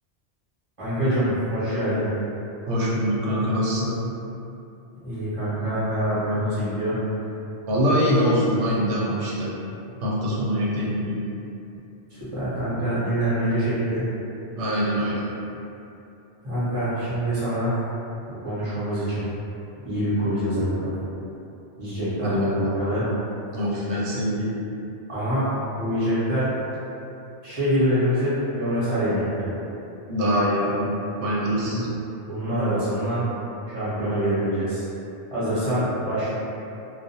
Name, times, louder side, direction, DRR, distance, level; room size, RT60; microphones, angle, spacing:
voice 1, 0.8-2.1 5.0-7.0 12.1-14.1 16.4-17.7 18.3-19.3 19.8-20.9 21.8-23.0 25.1-26.6 27.4-29.5 31.6-31.8 32.3-33.3 33.7-34.8 35.3-36.3, equal, 30° right, -12 dB, 1.0 m, -25 dB
voice 2, 2.7-4.0 7.7-9.5 10.0-11.2 14.6-15.2 22.2-22.3 23.5-24.5 30.1-31.9, equal, 80° right, -6 dB, 0.9 m, -23 dB
2.4 x 2.2 x 2.7 m, 2.8 s
omnidirectional pair, 1.2 m